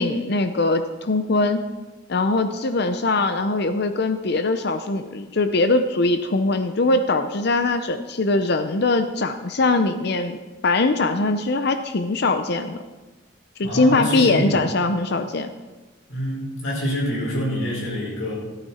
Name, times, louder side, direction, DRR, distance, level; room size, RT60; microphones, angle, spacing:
voice 1, 0.0-1.6 2.1-10.4 10.6-12.8 13.6-15.5, left 2 dB, 55° left, 9 dB, 0.6 m, -21 dB
voice 2, 13.6-14.6 16.1-18.3, equal, 80° left, -3 dB, 5.2 m, -26 dB
14.0 x 12.5 x 4.3 m, 1.2 s
head